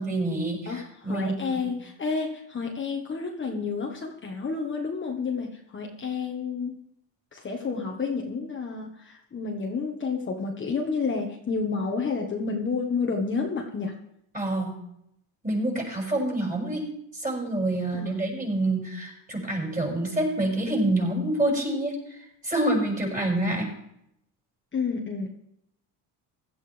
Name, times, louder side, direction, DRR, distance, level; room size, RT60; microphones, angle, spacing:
voice 1, 0.0-1.6 14.3-14.7 15.4-16.8 17.1-23.7, right 1 dB, 20° right, -2 dB, 6.2 m, -27 dB
voice 2, 0.7-6.8 7.3-14.0 17.9-18.2 24.7-25.4, left 4 dB, 30° left, 0 dB, 1.5 m, -30 dB
16.5 x 12.5 x 3.5 m, 0.77 s
cardioid pair, 110°, 41 cm